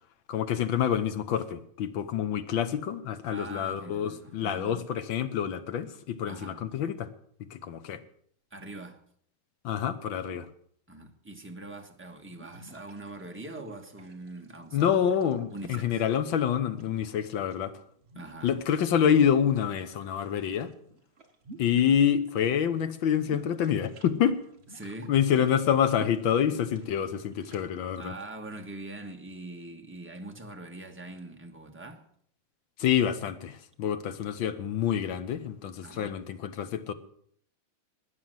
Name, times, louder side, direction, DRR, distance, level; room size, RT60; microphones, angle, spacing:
voice 1, 0.3-7.1 7.4-8.0 9.6-10.5 14.7-17.7 18.4-20.7 21.6-24.4 25.1-28.1 32.8-36.9, left 8 dB, 65° left, 1.7 m, -27 dB
voice 2, 3.3-4.8 6.3-6.6 8.5-9.0 10.9-15.0 15.5-16.0 18.1-18.5 24.7-25.1 28.0-32.0 35.8-36.2, right 2 dB, 5° right, 1.1 m, -43 dB
sound 1, 12.1-17.5 18.0-19.8 20.1-22.4 22.6-27.6, right 2 dB, 30° right, 1.6 m, -50 dB
13.0 x 9.6 x 7.7 m
omnidirectional pair, 2.4 m